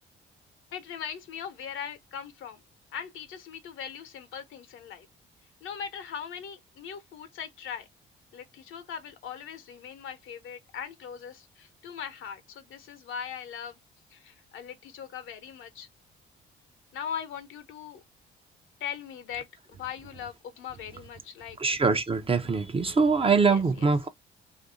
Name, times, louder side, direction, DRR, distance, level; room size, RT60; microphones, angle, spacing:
voice 1, 0.7-2.6 2.9-5.1 5.6-7.9 8.3-13.8 14.1-15.9 16.9-18.0 18.8-19.5 19.7-21.6 23.4-23.6, left 8 dB, 70° left, 0.8 m, -40 dB
voice 2, 21.6-24.1, right 4 dB, 25° right, 0.6 m, -23 dB
2.7 x 2.6 x 3.8 m
supercardioid pair, 65°, 21 cm